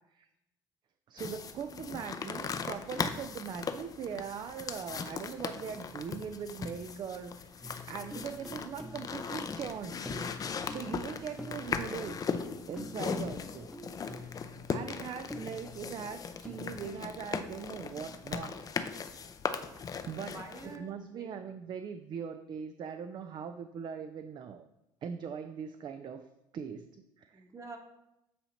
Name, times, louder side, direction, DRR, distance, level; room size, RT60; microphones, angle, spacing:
voice 1, 1.1-10.1 10.5-12.3 12.7-13.8 14.0-14.3 14.7-18.6 19.1-19.2 19.7-20.4 20.6-24.7 25.0-26.3 26.5-27.4, right 7 dB, 45° right, 9 dB, 0.4 m, -41 dB
sound 1, 1.2-20.8, left 6 dB, 35° left, 0.5 m, -38 dB
sound 2, 7.6-16.9, left 1 dB, 5° left, 0.8 m, -47 dB
voice 2, 20.2-21.3 27.3-27.8, right 3 dB, 30° right, 3 dB, 1.2 m, -47 dB
8.2 x 2.9 x 4.3 m, 0.90 s
supercardioid pair, 70°, 11 cm